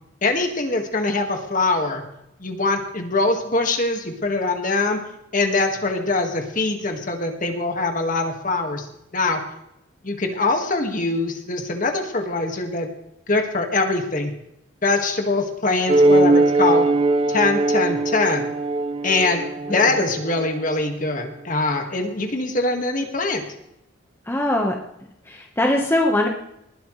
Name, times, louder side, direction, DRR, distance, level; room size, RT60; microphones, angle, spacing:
voice 1, 0.2-2.0 2.4-5.0 5.3-8.9 9.1-9.4 10.0-12.9 13.3-14.3 14.8-16.9 17.3-18.5 19.0-23.4, left 3 dB, 40° left, 4 dB, 1.8 m, -23 dB
sound 1, 15.9-20.8, right 2 dB, 25° right, 0.6 m, -20 dB
voice 2, 24.2-24.8 25.2-26.3, left 1 dB, 10° left, 0 dB, 1.2 m, -21 dB
20.0 x 11.5 x 3.3 m, 0.81 s
head